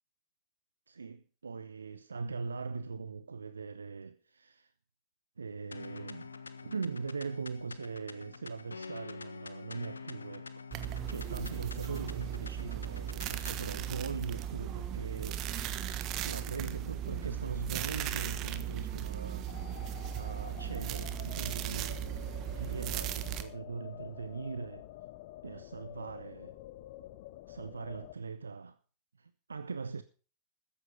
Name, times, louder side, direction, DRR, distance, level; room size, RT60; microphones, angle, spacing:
voice 1, 0.9-4.7 5.4-6.3 6.6-10.6 11.1-15.7 16.2-19.5 20.2-22.3 22.5-24.9 25.4-26.5 27.5-28.8 29.2-30.0, right 4 dB, 75° right, 0.6 m, -41 dB
sound 1, 5.7-13.7, left 4 dB, 75° left, 0.8 m, -47 dB
sound 2, 10.7-23.4, right 10 dB, 40° right, 1.3 m, -37 dB
sound 3, 19.5-28.1, left 15 dB, 50° left, 0.8 m, -49 dB
14.0 x 10.0 x 5.1 m
figure-of-eight pair, 90°, 0 cm